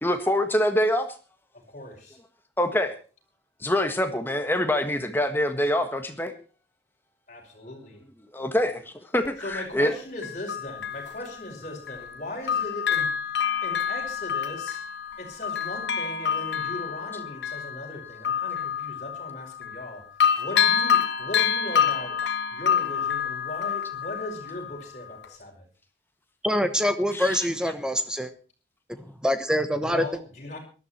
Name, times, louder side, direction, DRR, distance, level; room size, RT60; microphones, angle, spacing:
voice 1, 0.0-1.1 2.6-3.0 3.6-6.3 8.3-9.9 27.1-27.5, left 1 dB, 10° left, 7 dB, 1.5 m, -25 dB
voice 2, 1.5-2.2 7.3-8.0 9.4-14.8 15.2-20.1 20.4-22.2 22.5-25.7 29.8-30.6, left 1 dB, 40° left, 0 dB, 5.5 m, -38 dB
Bell, 9.3-9.4 10.2-12.2 12.5-19.9 20.2-24.8 25.2-25.3, left 8 dB, 75° left, 1.5 m, -27 dB
voice 3, 26.4-28.3 29.0-30.1, equal, 5° right, 10 dB, 1.1 m, -25 dB
19.0 x 12.5 x 4.4 m, 0.36 s
head